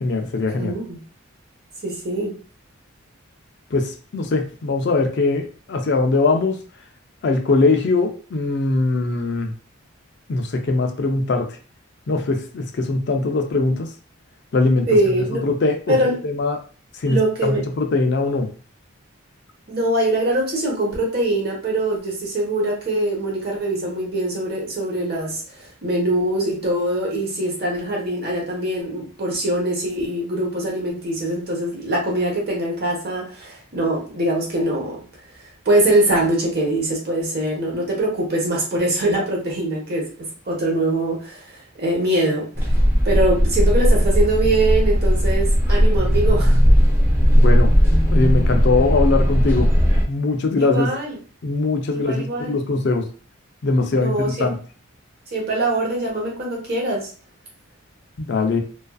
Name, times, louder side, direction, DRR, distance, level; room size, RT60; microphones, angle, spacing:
voice 1, 0.0-0.7 3.7-6.6 7.2-9.5 10.3-11.5 12.1-13.9 14.5-14.9 15.4-16.6 16.9-18.5 47.3-47.7 48.1-49.7 50.1-50.9 51.4-53.0 53.6-54.6 58.2-58.6, left 3 dB, 55° left, 4 dB, 0.4 m, -21 dB
voice 2, 0.6-1.0 1.8-2.3 14.9-15.4 15.9-16.2 17.0-17.6 19.7-35.0 35.6-42.5 43.0-46.6 50.6-51.2 51.9-52.6 53.9-54.5 55.3-57.1, right 1 dB, 45° right, -2 dB, 0.9 m, -23 dB
sound 1, 42.6-50.1, equal, 10° right, 0.5 m, -16 dB
2.4 x 2.3 x 2.3 m, 0.39 s
head